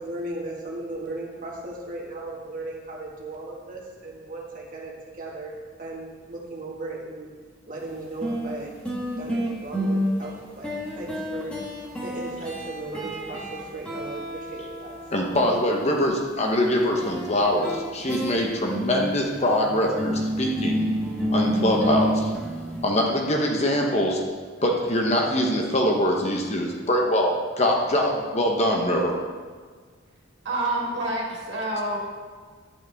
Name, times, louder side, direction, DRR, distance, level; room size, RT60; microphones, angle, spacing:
voice 1, 0.0-4.9 5.2-7.3 7.7-8.7 9.2-10.7 10.9-11.5 12.0-15.0, right 2 dB, 40° right, -3 dB, 1.9 m, -36 dB
sound 1, 7.8-7.9 8.2-15.5 17.0-22.8, equal, 5° left, 1.5 m, -29 dB
voice 2, 15.1-20.9 21.3-22.3 22.8-24.2 24.6-29.2, left 1 dB, 35° left, 0 dB, 1.0 m, -23 dB
voice 3, 30.4-32.0, right 1 dB, 60° right, -4 dB, 2.6 m, -27 dB
11.0 x 8.7 x 3.5 m, 1.5 s
head